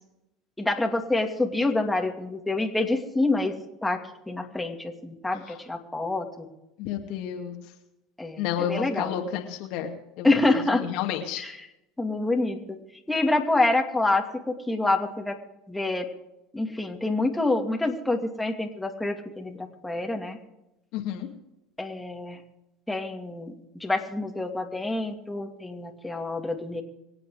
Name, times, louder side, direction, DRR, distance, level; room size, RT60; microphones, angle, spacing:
voice 1, 0.6-3.5 3.8-4.0 4.3-6.5 8.2-9.1 10.2-10.8 11.4-11.5 12.0-12.8 13.1-15.4 15.7-16.1 16.5-20.4 21.8-22.4 22.9-26.8, left 2 dB, 10° left, 2 dB, 2.6 m, -27 dB
voice 2, 6.8-7.5 8.4-10.3 10.5-11.5 20.9-21.3, left 9 dB, 65° left, 4 dB, 2.3 m, -31 dB
24.5 x 8.8 x 5.1 m, 0.90 s
hypercardioid pair, 80°, 0 cm